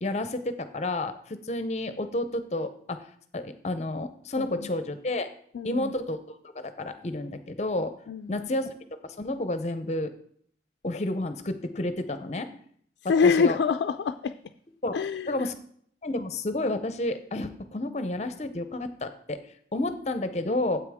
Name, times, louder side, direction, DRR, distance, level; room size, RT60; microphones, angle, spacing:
voice 1, 0.0-3.0 3.3-5.3 5.6-7.9 8.3-8.7 9.2-10.1 10.8-12.5 13.0-13.6 14.8-14.9 15.3-15.6 16.0-19.4 19.7-20.8, left 2 dB, 40° left, 10 dB, 0.6 m, -30 dB
voice 2, 5.5-5.9 8.1-8.5 13.1-14.3 14.9-15.3, left 5 dB, 90° left, 8 dB, 0.3 m, -25 dB
9.4 x 8.0 x 3.5 m, 0.62 s
head